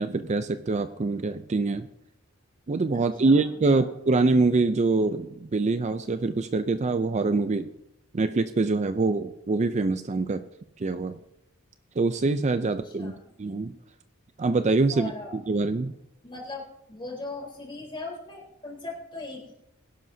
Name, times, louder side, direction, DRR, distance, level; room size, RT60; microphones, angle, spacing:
voice 1, 0.0-1.9 2.7-7.7 8.1-10.4 10.8-11.2 12.0-13.7 14.4-15.9, right 3 dB, 30° right, 10 dB, 0.4 m, -25 dB
voice 2, 2.9-3.8 12.6-13.2 14.9-15.4 16.2-19.5, left 3 dB, 25° left, -2 dB, 3.7 m, -39 dB
21.0 x 11.5 x 2.7 m, 0.83 s
head